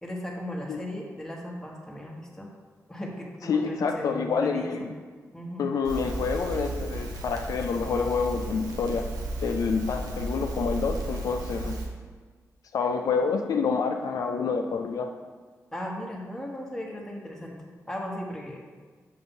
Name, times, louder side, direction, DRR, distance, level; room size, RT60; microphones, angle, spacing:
voice 1, 0.0-2.5 2.9-4.9 5.3-5.7 15.7-18.6, left 1 dB, 10° left, -2 dB, 1.1 m, -37 dB
voice 2, 3.4-4.9 5.6-9.0 9.4-11.8 12.7-15.1, left 5 dB, 75° left, 4 dB, 0.4 m, -27 dB
Crackle, 5.8-11.9, right 2 dB, 90° right, 0.7 m, -34 dB
6.8 x 2.6 x 5.4 m, 1.5 s
cardioid pair, 70°, 6 cm